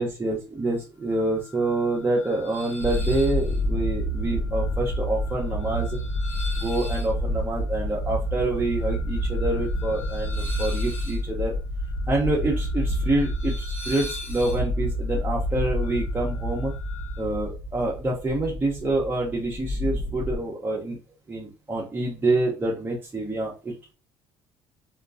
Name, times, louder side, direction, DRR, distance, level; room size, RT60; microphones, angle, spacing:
voice 1, 0.0-6.0 6.6-11.5 12.1-16.7 17.2-21.0 21.3-23.9, right 2 dB, 15° right, -3 dB, 0.7 m, -27 dB
sound 1, 1.0-17.2, left 3 dB, 20° left, 0.9 m, -43 dB
sound 2, 2.8-20.4, equal, 60° left, 1.0 m, -28 dB
2.3 x 2.2 x 2.4 m, 0.32 s
supercardioid pair, 70°, 12 cm